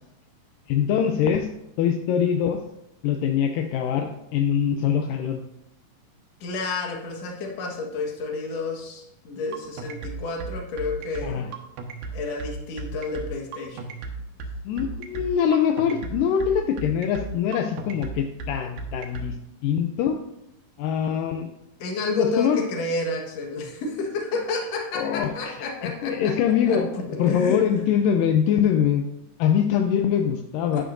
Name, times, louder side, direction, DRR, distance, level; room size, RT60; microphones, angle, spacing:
voice 1, 0.7-1.5 1.8-2.6 3.0-5.4 11.2-11.5 14.7-19.4 19.6-20.2 20.8-21.5 22.1-22.6 24.9-25.6 25.8-26.9 27.2-29.1 29.4-30.8, left 8 dB, 80° left, 5 dB, 2.2 m, -23 dB
voice 2, 6.4-11.4 12.1-13.8 21.8-26.3 26.7-26.8 27.2-27.8 30.7-30.8, left 3 dB, 55° left, 1 dB, 2.3 m, -30 dB
sound 1, 9.5-19.3, right 4 dB, 75° right, 2.7 m, -34 dB
11.0 x 10.0 x 2.6 m, 0.85 s
omnidirectional pair, 4.1 m